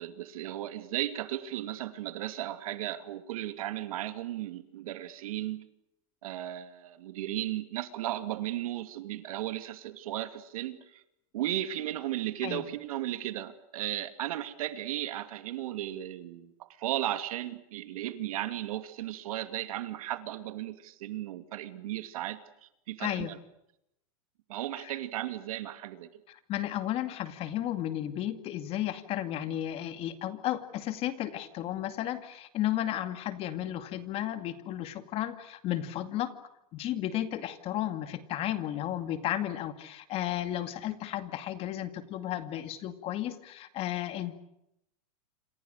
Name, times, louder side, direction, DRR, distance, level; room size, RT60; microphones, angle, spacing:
voice 1, 0.0-5.7 6.2-11.0 11.3-23.4 24.5-26.1, right 13 dB, 75° right, 10 dB, 2.6 m, -35 dB
voice 2, 23.0-23.3 24.8-24.9 26.3-36.3 36.7-44.3, left 12 dB, 30° left, 11 dB, 2.2 m, -33 dB
28.0 x 27.5 x 6.6 m, 0.82 s
supercardioid pair, 155°, 18 cm